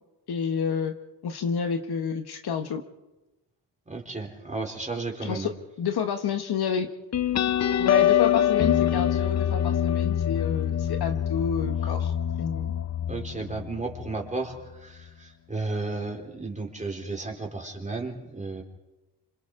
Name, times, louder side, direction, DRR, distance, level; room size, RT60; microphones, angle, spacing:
voice 1, 0.3-0.9 1.2-2.8 5.2-5.5 5.8-6.9 7.8-12.7, left 6 dB, 60° left, 7 dB, 1.3 m, -29 dB
voice 2, 3.9-5.5 13.1-18.6, right 3 dB, 15° right, 2 dB, 3.6 m, -33 dB
sound 1, 7.1-14.3, left 10 dB, 40° left, 0.7 m, -25 dB
27.5 x 26.0 x 3.8 m, 1.1 s
cardioid pair, 100°, 43 cm